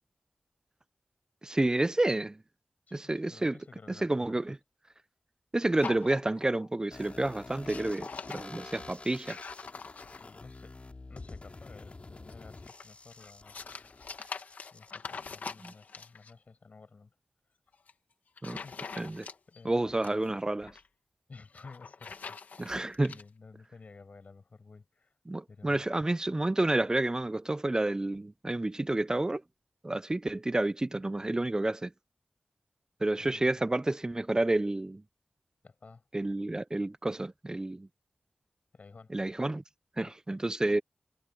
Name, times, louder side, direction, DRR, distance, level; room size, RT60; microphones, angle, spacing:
voice 1, 1.4-2.4 2.9-3.6 4.0-4.6 5.5-9.4 15.6-15.7 18.4-18.6 19.0-19.3 19.6-20.8 22.6-23.1 25.3-29.4 29.8-31.9 33.0-35.0 36.1-37.9 39.1-39.6 40.0-40.8, right 2 dB, 25° right, 0.4 m, -30 dB
voice 2, 2.9-4.4 10.1-10.8 11.1-13.6 14.7-17.1 18.5-18.9 19.5-20.2 21.3-22.7 23.1-25.1 25.5-25.8 33.2-33.7 35.6-36.0 38.7-39.1 40.0-40.1, left 4 dB, 65° left, 6.2 m, -53 dB
sound 1, 5.8-6.7 7.0-7.3 7.5-10.4 12.3-16.3 17.7-17.9 18.4-19.6 19.9-20.9 21.5-23.2, left 5 dB, 85° left, 1.7 m, -44 dB
sound 2, 6.9-14.9, left 3 dB, 50° left, 3.3 m, -48 dB
cardioid pair, 50°, 3 cm